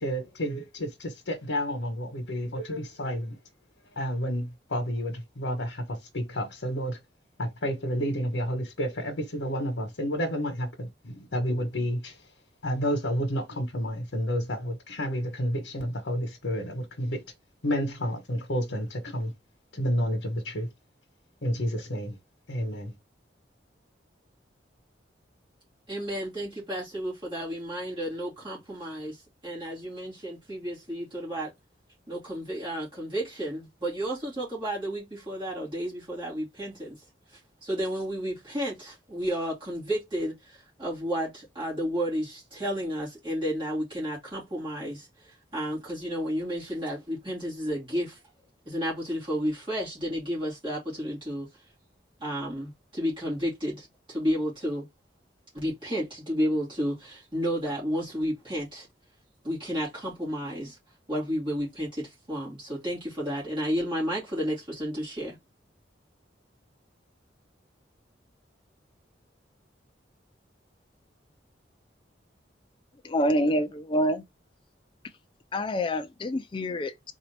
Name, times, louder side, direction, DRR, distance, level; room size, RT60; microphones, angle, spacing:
voice 1, 0.0-3.4 4.0-7.0 7.4-12.2 12.6-17.2 17.6-19.3 19.7-20.7 21.4-22.1 22.5-22.9, equal, 85° left, 1.1 m, -30 dB
voice 2, 25.9-31.5 32.1-37.0 37.6-48.2 48.7-51.5 52.2-54.9 55.5-58.9 59.4-60.8 61.1-65.4, equal, 25° right, 2.3 m, -32 dB
voice 3, 73.0-74.2 75.5-77.1, equal, 25° left, 0.4 m, -27 dB
3.9 x 2.7 x 3.3 m
head